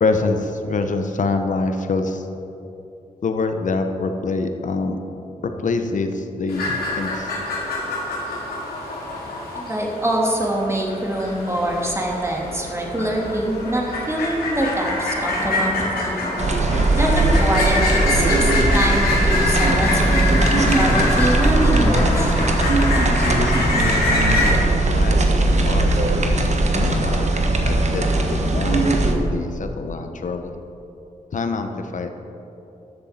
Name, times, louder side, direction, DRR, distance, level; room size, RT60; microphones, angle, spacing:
voice 1, 0.0-2.2 3.2-5.0 5.6-7.3 24.4-26.2 26.7-27.3 27.6-30.5 31.3-32.1, left 3 dB, 55° left, 7 dB, 0.9 m, -25 dB
sound 1, 6.5-24.5, left 2 dB, 85° left, 2.1 m, -25 dB
voice 2, 9.6-16.3 17.0-22.3, right 1 dB, 15° right, -2 dB, 2.4 m, -24 dB
sound 2, 16.4-29.1, right 2 dB, 50° right, 1.2 m, -19 dB
13.5 x 6.9 x 4.4 m, 2.8 s
cardioid pair, 50°, 15 cm